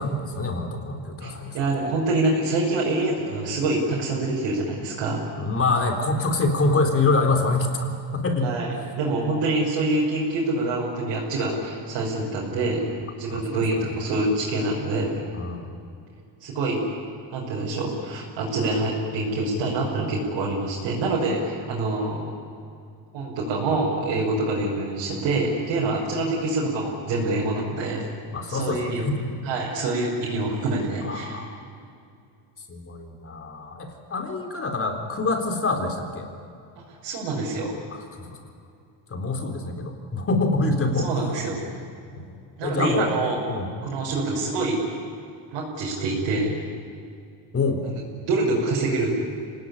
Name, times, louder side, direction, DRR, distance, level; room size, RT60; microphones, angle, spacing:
voice 1, 0.0-1.9 5.4-8.5 13.3-13.6 15.3-15.7 28.3-29.4 31.0-31.6 32.7-36.3 37.9-38.4 39.1-41.3 42.1-42.2 42.6-43.1 43.5-43.7 47.5-47.8, left 3 dB, 30° left, 4 dB, 3.9 m, -26 dB
voice 2, 1.5-5.2 8.4-12.9 13.2-15.2 16.4-16.8 17.3-22.2 23.1-28.1 28.5-29.0 29.4-31.4 37.0-37.8 41.0-41.6 42.6-43.4 43.8-44.8 45.5-46.6 47.8-47.9 48.2-49.1, right 2 dB, 65° right, -5 dB, 6.2 m, -26 dB
26.5 x 18.5 x 10.0 m, 2.5 s
cardioid pair, 125°, 46 cm